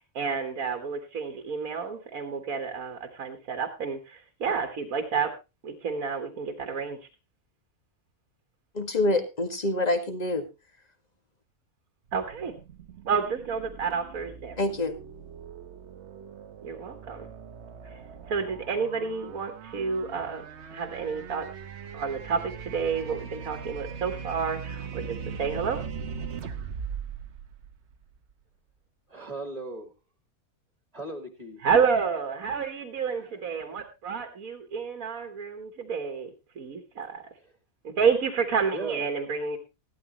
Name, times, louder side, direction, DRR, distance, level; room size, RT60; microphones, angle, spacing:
voice 1, 0.0-5.3 5.6-7.0 12.1-12.5 13.1-14.6 16.6-17.3 17.8-18.0 18.3-20.4 20.7-21.5 21.9-25.8 31.6-36.3 36.6-37.2 38.0-39.6, right 6 dB, 80° right, 1.8 m, -30 dB
voice 2, 8.7-10.5 14.6-14.9, left 2 dB, 30° left, 1.8 m, -26 dB
sound 1, 12.1-28.3, right 6 dB, 55° right, 1.1 m, -40 dB
voice 3, 29.1-29.9 30.9-31.6 33.0-33.4 38.7-39.1, right 2 dB, 25° right, 2.0 m, -38 dB
15.5 x 12.5 x 3.0 m
omnidirectional pair, 1.5 m